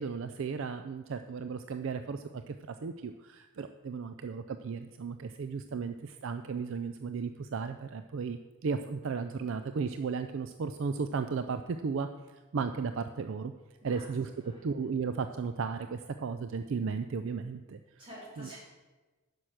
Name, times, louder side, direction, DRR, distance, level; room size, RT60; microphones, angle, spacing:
voice 1, 0.0-12.1 12.5-13.5 13.8-14.3 14.6-17.8 18.4-18.5, right 5 dB, 60° right, 9 dB, 0.4 m, -35 dB
voice 2, 13.8-14.7 18.0-18.6, equal, 25° right, -6 dB, 3.8 m, -50 dB
10.0 x 6.2 x 6.3 m, 1.2 s
head